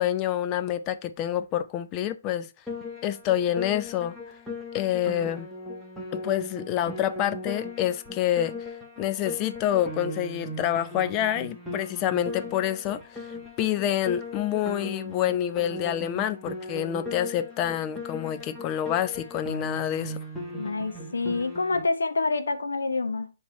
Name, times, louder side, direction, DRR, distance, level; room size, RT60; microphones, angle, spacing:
voice 1, 0.0-2.5 3.0-4.2 4.7-5.5 6.1-8.5 9.0-13.3 13.6-20.2, left 11 dB, 25° left, 0.4 m, -27 dB
Piano, 2.7-21.9, left 2 dB, ahead, 1.2 m, -38 dB
voice 2, 20.6-23.3, left 3 dB, 85° left, 0.9 m, -27 dB
6.9 x 3.4 x 4.4 m
hypercardioid pair, 150°, 0 cm